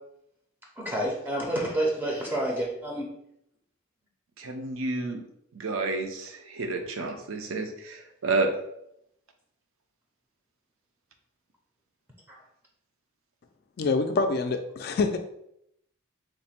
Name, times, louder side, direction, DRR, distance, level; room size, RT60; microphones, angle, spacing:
voice 1, 0.8-3.1, right 1 dB, 10° right, -2 dB, 0.5 m, -29 dB
voice 2, 4.4-5.2 5.5-8.5, right 3 dB, 70° right, 4 dB, 0.5 m, -30 dB
voice 3, 13.8-15.2, left 3 dB, 45° left, 7 dB, 0.3 m, -26 dB
3.1 x 2.1 x 4.2 m, 0.76 s
head